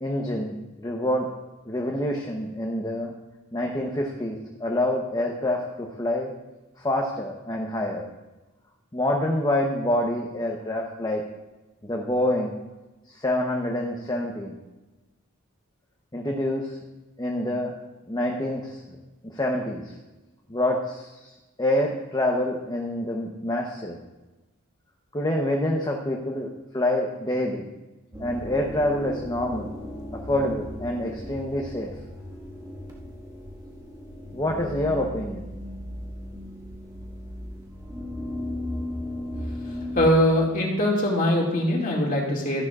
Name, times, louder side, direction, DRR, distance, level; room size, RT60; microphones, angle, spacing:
voice 1, 0.0-1.3 1.7-3.1 3.5-6.3 6.8-8.1 8.9-11.2 11.8-12.5 13.2-14.6 16.1-16.8 17.2-17.7 18.1-19.0 19.2-19.9 20.5-24.0 25.1-26.5 26.7-27.7 28.2-29.7 30.1-31.9 34.3-35.5, left 1 dB, 20° left, 1 dB, 0.9 m, -27 dB
sound 1, 28.1-40.1, left 1 dB, 20° right, 1.6 m, -36 dB
voice 2, 39.9-42.7, left 1 dB, 40° left, -2 dB, 2.3 m, -22 dB
14.0 x 11.0 x 2.5 m, 1.1 s
head